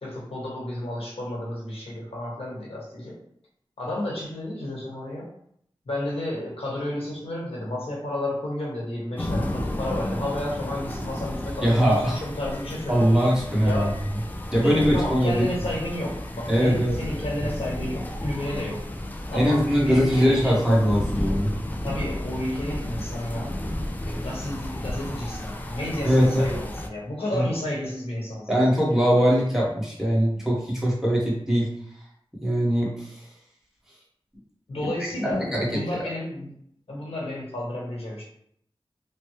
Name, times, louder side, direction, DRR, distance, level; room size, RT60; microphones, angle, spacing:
voice 1, 0.0-3.2 3.8-5.3 5.9-13.1 13.6-13.9 14.6-18.8 19.3-20.6 21.8-29.0 34.7-36.5 36.9-38.3, left 1 dB, 85° left, -4 dB, 1.1 m, -32 dB
sound 1, 9.2-26.9, left 1 dB, 20° left, 0.4 m, -32 dB
voice 2, 11.6-12.2 12.9-13.9 14.5-15.5 16.5-17.0 19.3-21.5 21.8-21.9 26.0-26.6 27.3-27.4 28.5-31.7 32.3-33.2 34.7-34.9 35.3-36.0, equal, 5° right, -6 dB, 1.2 m, -21 dB
3.1 x 2.1 x 3.1 m, 0.68 s
wide cardioid pair, 75°, 10 cm